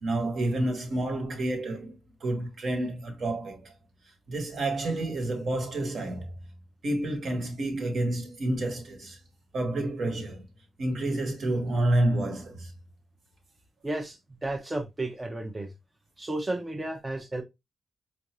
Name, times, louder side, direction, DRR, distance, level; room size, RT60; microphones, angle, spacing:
voice 1, 0.0-3.7 4.3-6.3 6.8-9.2 9.5-10.4 10.8-12.7, right 1 dB, 55° right, 1.3 m, -29 dB
voice 2, 13.8-15.7 16.2-17.4, right 2 dB, 15° right, 0.6 m, -33 dB
4.5 x 2.6 x 2.9 m
cardioid pair, 140°, 0 cm